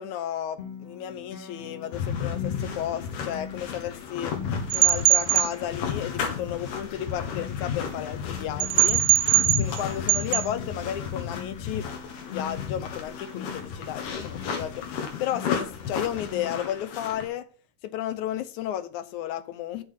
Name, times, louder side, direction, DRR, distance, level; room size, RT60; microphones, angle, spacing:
voice 1, 0.0-4.4 4.7-9.0 9.5-11.9 12.3-17.5 17.8-19.8, left 11 dB, 75° left, 2.1 m, -33 dB
Acoustic guitar, 0.6-16.6, left 7 dB, 55° left, 2.7 m, -43 dB
sound 1, 1.9-17.3, left 7 dB, 90° left, 3.2 m, -33 dB
sound 2, 4.7-5.5 8.6-9.8 10.1-10.4, right 16 dB, 75° right, 1.8 m, -20 dB
6.9 x 6.0 x 6.5 m
omnidirectional pair, 3.7 m